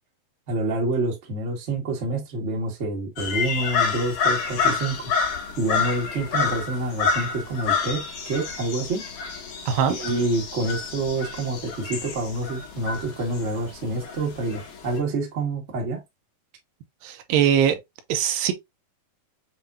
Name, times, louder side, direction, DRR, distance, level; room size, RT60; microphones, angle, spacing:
voice 1, 0.5-5.1 5.6-9.0 9.9-16.0, right 2 dB, 50° right, 0.8 m, -27 dB
sound 1, 3.2-15.0, left 5 dB, 60° left, 2.6 m, -28 dB
voice 2, 17.0-17.8 18.1-18.5, right 9 dB, 85° right, 2.4 m, -21 dB
7.4 x 2.6 x 2.6 m
omnidirectional pair, 4.1 m